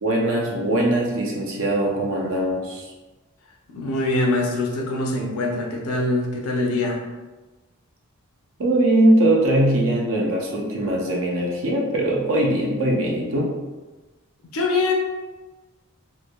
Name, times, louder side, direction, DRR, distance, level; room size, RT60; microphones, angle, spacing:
voice 1, 0.0-2.9 8.6-13.5, right 1 dB, 60° right, -1 dB, 0.6 m, -21 dB
voice 2, 3.7-7.0 14.5-14.9, left 2 dB, 75° left, 0 dB, 0.6 m, -23 dB
3.1 x 2.6 x 2.2 m, 1.2 s
head